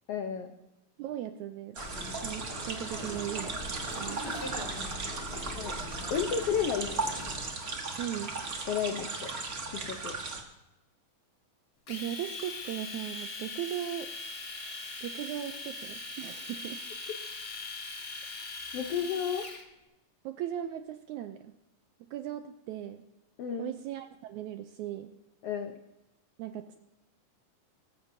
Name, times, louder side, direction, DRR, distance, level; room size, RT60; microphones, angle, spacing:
voice 1, 0.1-0.5 5.6-5.8 6.1-7.1 8.7-9.3 9.7-10.1 18.7-19.4 23.4-23.7 25.4-25.7, left 7 dB, 80° left, 5 dB, 1.3 m, -32 dB
voice 2, 1.0-1.8 2.2-3.6 4.0-4.6 8.0-8.3 11.9-14.1 15.0-16.8 20.2-21.5 22.0-23.0 23.6-25.1 26.4-26.8, right 11 dB, 80° right, 8 dB, 1.7 m, -38 dB
sound 1, 1.7-10.4, right 3 dB, 55° right, 1.0 m, -37 dB
sound 2, 1.8-7.5, left 1 dB, 20° left, 2.8 m, -41 dB
Domestic sounds home sounds, 11.9-19.6, left 3 dB, 50° left, 1.0 m, -41 dB
19.0 x 15.0 x 2.7 m, 0.95 s
omnidirectional pair, 3.9 m